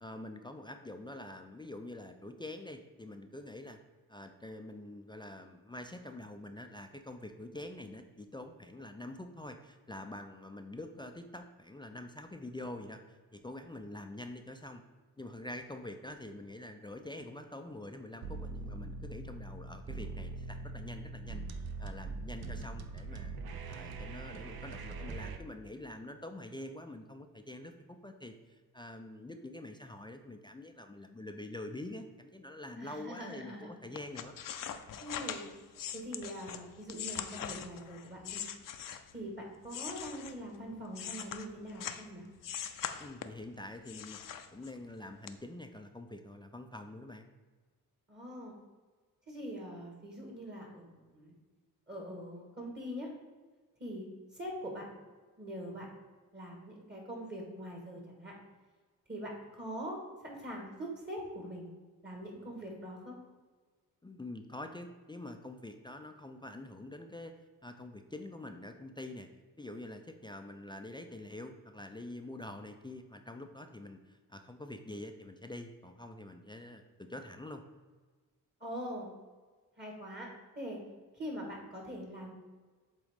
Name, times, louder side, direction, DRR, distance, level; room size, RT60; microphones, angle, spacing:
voice 1, 0.0-3.8 4.1-14.8 15.2-23.3 23.7-27.7 28.0-34.4 43.0-44.2 44.5-47.3 64.0-67.3 67.6-69.3 69.6-77.6, left 1 dB, 15° left, 6 dB, 0.4 m, -46 dB
sound 1, 18.2-25.4, right 3 dB, 70° right, 0.6 m, -42 dB
voice 2, 32.8-33.8 35.0-35.5 35.9-38.4 39.1-42.2 48.1-48.6 49.3-51.3 51.9-53.1 53.8-54.1 54.3-54.9 55.4-55.9 56.3-58.3 59.1-61.7 62.0-63.1 78.6-79.1 79.8-80.8 81.1-82.3, equal, 30° right, 0 dB, 1.5 m, -43 dB
sound 2, 33.9-39.2 39.6-42.1 42.4-43.5 43.9-44.9 45.3-45.4, left 9 dB, 60° left, 0.5 m, -42 dB
7.9 x 3.7 x 3.6 m, 1.4 s
cardioid pair, 95°, 38 cm